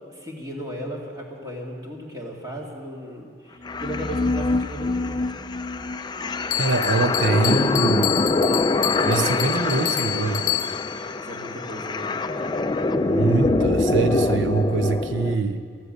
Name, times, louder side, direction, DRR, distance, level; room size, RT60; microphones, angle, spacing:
voice 1, 0.1-5.2 10.9-12.1, equal, 20° right, -1 dB, 2.1 m, -36 dB
sound 1, 3.6-15.4, left 2 dB, 20° left, 0.4 m, -24 dB
Bell, 6.5-11.0, left 14 dB, 80° left, 0.5 m, -28 dB
voice 2, 6.6-8.3 9.0-10.6 13.1-15.6, right 4 dB, 70° right, 9 dB, 0.8 m, -24 dB
15.0 x 13.5 x 6.6 m, 2.2 s
head